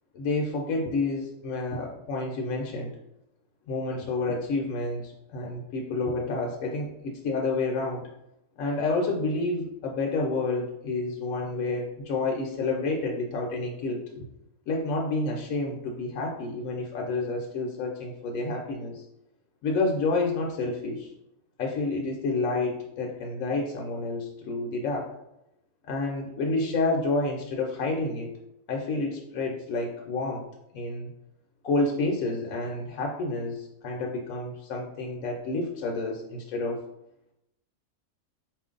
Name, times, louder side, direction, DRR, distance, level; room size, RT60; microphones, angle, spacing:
voice 1, 0.1-2.9 3.7-8.1 8.6-14.3 14.7-19.0 19.6-21.1 21.6-25.1 25.8-28.3 28.7-30.4 30.7-31.1 31.6-36.8, left 3 dB, 75° left, 0 dB, 1.0 m, -29 dB
4.5 x 2.5 x 3.7 m, 0.83 s
omnidirectional pair, 1.5 m